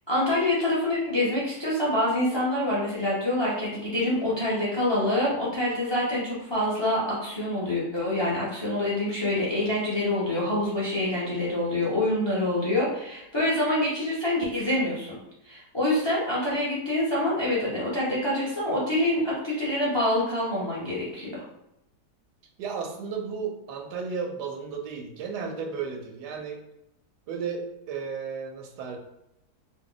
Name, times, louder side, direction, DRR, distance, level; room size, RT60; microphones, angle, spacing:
voice 1, 0.1-15.2 15.4-21.4, left 1 dB, 40° left, -7 dB, 0.4 m, -26 dB
voice 2, 22.6-26.6 27.3-29.0, right 5 dB, 90° right, 3 dB, 1.2 m, -34 dB
2.9 x 2.1 x 3.8 m, 0.84 s
omnidirectional pair, 1.7 m